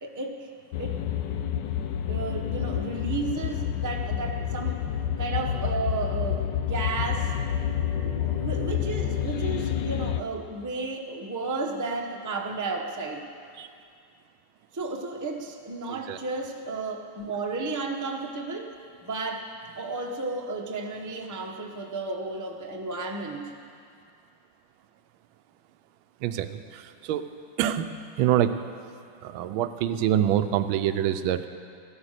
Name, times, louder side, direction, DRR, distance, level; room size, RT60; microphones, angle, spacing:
voice 1, 0.0-0.5 0.8-1.0 2.1-4.8 5.2-7.3 8.0-13.3 14.7-18.7 19.0-19.5 19.7-23.5, right 3 dB, 20° right, 1 dB, 0.5 m, -33 dB
sound 1, 0.7-10.2, left 9 dB, 70° left, 1.2 m, -29 dB
voice 2, 26.2-27.3 27.6-28.5 29.2-31.4, right 11 dB, 90° right, 10 dB, 1.4 m, -26 dB
15.0 x 11.5 x 6.6 m, 2.4 s
omnidirectional pair, 2.2 m